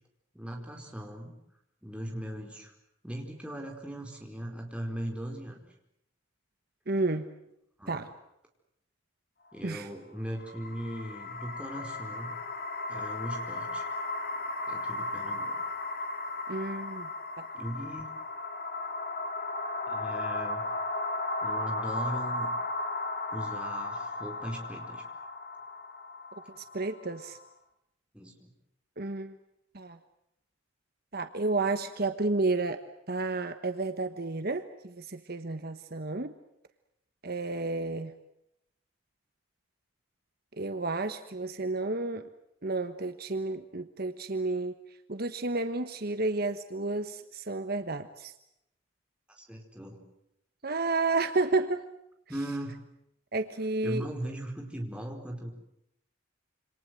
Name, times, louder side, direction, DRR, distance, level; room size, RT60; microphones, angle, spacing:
voice 1, 0.3-1.4 1.8-2.7 3.0-5.7 7.8-8.1 9.5-12.3 12.9-13.9 14.7-15.6 17.5-18.1 19.9-20.6 21.4-22.5 23.3-25.0 28.1-28.5 49.4-50.0 52.3-52.7 53.8-55.5, right 1 dB, 5° right, 1 dB, 4.5 m, -38 dB
voice 2, 6.9-7.3 7.9-8.1 9.6-9.9 16.5-17.1 17.4-17.5 26.6-27.4 29.0-29.4 29.7-30.0 31.1-32.8 33.1-36.3 37.2-38.1 40.6-42.3 42.6-44.7 45.1-48.3 50.6-51.8 53.3-54.1, right 3 dB, 50° right, 9 dB, 1.3 m, -31 dB
sound 1, 10.3-27.5, left 2 dB, 50° left, 2.1 m, -35 dB
27.5 x 26.0 x 7.8 m, 0.79 s
head